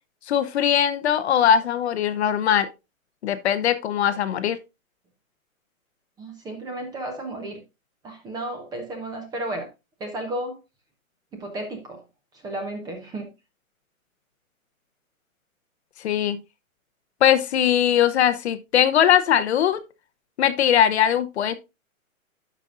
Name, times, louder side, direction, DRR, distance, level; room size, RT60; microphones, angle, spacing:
voice 1, 0.3-2.7 3.2-4.6 16.0-16.4 17.2-19.8 20.4-21.5, left 9 dB, 50° left, 0.7 m, -20 dB
voice 2, 6.2-7.6 8.0-9.7 10.0-10.6 11.3-12.0 12.4-13.3, right 1 dB, 10° right, 0.7 m, -33 dB
12.0 x 5.2 x 2.5 m
hypercardioid pair, 150°, 42 cm